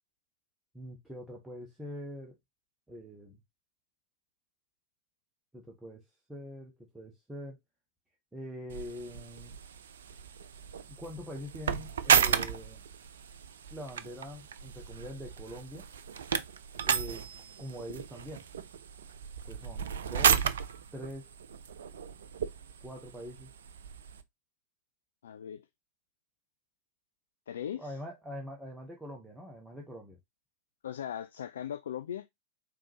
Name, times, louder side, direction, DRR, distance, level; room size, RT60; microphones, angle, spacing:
voice 1, 0.7-2.4 2.9-3.4 5.5-6.0 6.3-7.6 8.3-9.6 10.9-12.8 13.7-15.9 16.8-17.2 17.6-18.4 19.4-20.5 20.9-21.3 22.8-23.5 27.8-30.2, equal, 5° right, 1.1 m, -44 dB
sound 1, 8.7-24.2, right 7 dB, 65° right, 0.5 m, -33 dB
voice 2, 25.2-25.7 27.5-28.0 30.8-32.3, left 9 dB, 65° left, 0.3 m, -38 dB
4.8 x 3.7 x 2.8 m
figure-of-eight pair, 90°, 0 cm